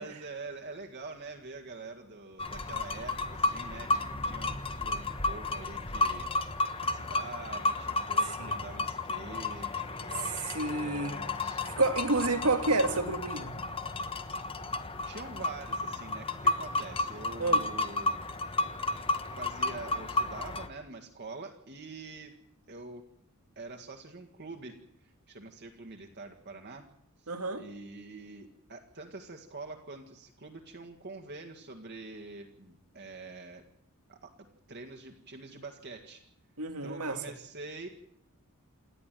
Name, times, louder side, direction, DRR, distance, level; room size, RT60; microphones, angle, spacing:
voice 1, 0.0-6.3 6.8-11.7 14.7-18.2 19.4-22.4 22.7-23.0 23.6-26.9 27.2-33.6 34.1-34.3 34.7-36.2 36.8-37.9, right 3 dB, 50° right, 1.9 m, -45 dB
sound 1, 2.4-20.7, left 2 dB, 25° left, 1.3 m, -32 dB
voice 2, 8.2-8.6 10.2-11.1 11.6-13.5 17.4-17.6 27.3-27.6 36.6-37.2, right 2 dB, 85° right, 2.2 m, -29 dB
28.5 x 11.0 x 9.2 m
head